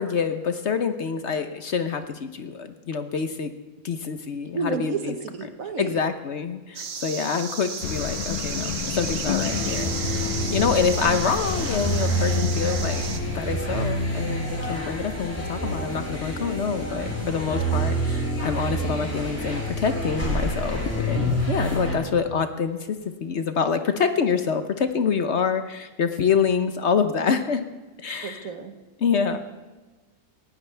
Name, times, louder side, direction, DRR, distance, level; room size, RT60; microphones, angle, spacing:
voice 1, 0.0-3.5 3.8-5.1 5.8-13.0 13.3-27.6 28.0-28.5 29.0-29.4, left 6 dB, 55° left, 8 dB, 1.0 m, -26 dB
voice 2, 4.5-6.0 28.2-28.7, right 4 dB, 65° right, 7 dB, 1.7 m, -31 dB
sound 1, 6.7-13.2, right 6 dB, 50° right, 1.2 m, -33 dB
sound 2, 7.8-13.4, left 10 dB, 80° left, 1.2 m, -31 dB
sound 3, 9.4-22.0, right 1 dB, 10° left, 4.6 m, -28 dB
19.0 x 16.0 x 3.4 m, 1.2 s
omnidirectional pair, 1.6 m